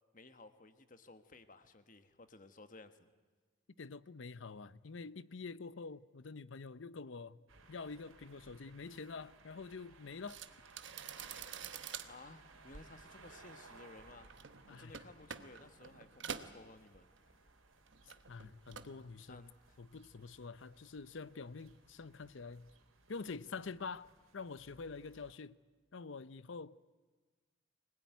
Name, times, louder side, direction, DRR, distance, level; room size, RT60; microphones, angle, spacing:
voice 1, 0.1-3.1 12.1-14.3 14.7-17.3 19.3-19.8, left 3 dB, 40° left, 1.4 m, -57 dB
voice 2, 3.8-7.4 7.7-10.4 14.7-14.9 18.3-19.5 19.8-22.7 23.1-24.1 24.3-25.6 25.9-26.8, left 4 dB, 70° left, 0.7 m, -46 dB
sound 1, 7.5-25.3, right 3 dB, 90° right, 3.5 m, -61 dB
sound 2, 10.3-17.5 17.8-19.0 19.3-19.7, right 7 dB, 60° right, 1.1 m, -48 dB
24.0 x 20.5 x 9.4 m
head